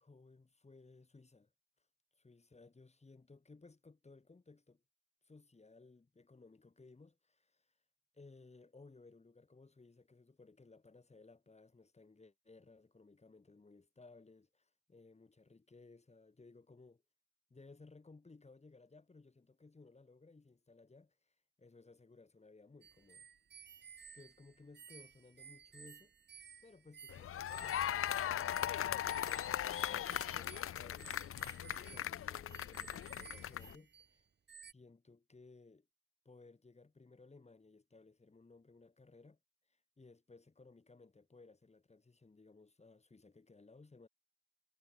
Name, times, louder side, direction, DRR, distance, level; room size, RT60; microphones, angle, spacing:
voice 1, 0.0-1.5 2.2-4.8 5.2-7.7 8.1-17.0 17.5-23.3 23.6-23.9 24.1-26.1 26.6-31.5 31.8-34.2 34.7-35.9 36.3-39.4 39.7-44.1, left 3 dB, 20° left, 3.6 m, -60 dB
sound 1, 22.8-34.2 34.5-34.7, right 7 dB, 35° right, 1.1 m, -57 dB
sound 2, 27.1-33.8, left 10 dB, 45° left, 0.6 m, -39 dB
cardioid pair, 90°, 30 cm